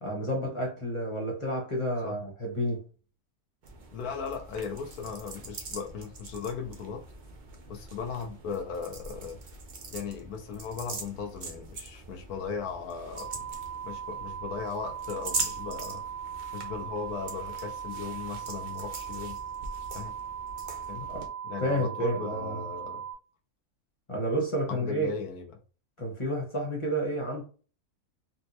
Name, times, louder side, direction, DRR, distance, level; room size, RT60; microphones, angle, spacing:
voice 1, 0.0-2.8 21.1-21.3 21.6-22.7 24.1-25.1 26.0-27.4, right 1 dB, 25° left, 0.9 m, -30 dB
sound 1, 3.6-21.3, right 3 dB, 55° right, 0.5 m, -42 dB
voice 2, 3.9-7.0 7.7-9.4 9.9-13.4 13.8-16.0 16.5-19.4 19.9-20.1 20.9-21.1 21.4-23.0 24.7-25.5, left 6 dB, 85° left, 1.2 m, -37 dB
sound 2, 13.1-23.1, right 8 dB, 80° right, 1.2 m, -39 dB
4.1 x 2.2 x 2.8 m
omnidirectional pair, 1.6 m